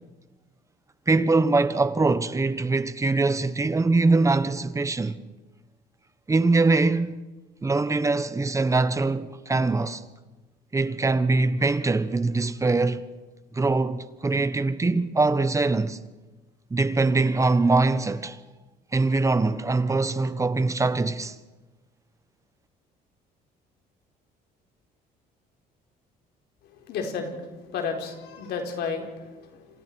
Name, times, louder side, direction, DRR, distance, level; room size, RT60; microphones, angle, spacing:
voice 1, 1.1-5.2 6.3-7.2 7.6-10.0 10.7-13.0 13.5-16.0 16.7-18.4 18.9-21.4, right 3 dB, 20° right, 1.2 m, -23 dB
voice 2, 26.6-29.8, left 5 dB, 75° left, 4.2 m, -33 dB
28.5 x 27.0 x 4.7 m
cardioid pair, 110°, 17 cm